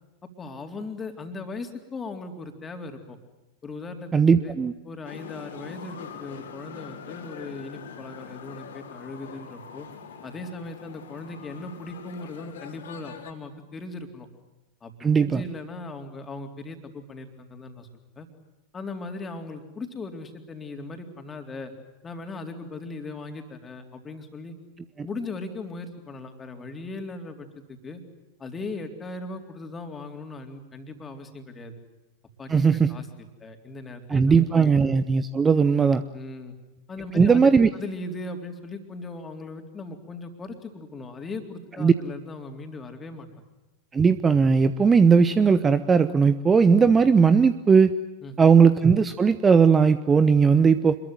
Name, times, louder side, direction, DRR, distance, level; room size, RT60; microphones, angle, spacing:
voice 1, 0.4-3.2 3.6-4.1 4.4-4.6 4.8-9.9 10.2-14.3 14.8-14.9 15.2-17.9 18.2-18.3 18.7-21.7 22.0-24.6 25.0-28.0 28.4-31.7 32.4-34.7 36.1-36.6 36.9-43.3 48.2-48.5, left 3 dB, 20° left, 5 dB, 3.8 m, -38 dB
voice 2, 4.1-4.7 15.0-15.4 32.5-32.9 34.1-36.0 37.1-37.7 41.8-41.9 43.9-47.9 48.4-51.0, right 5 dB, 15° right, 13 dB, 1.0 m, -18 dB
sound 1, 5.0-13.3, left 7 dB, 60° left, 4.1 m, -43 dB
27.0 x 22.0 x 9.2 m, 1.0 s
figure-of-eight pair, 90°, 0 cm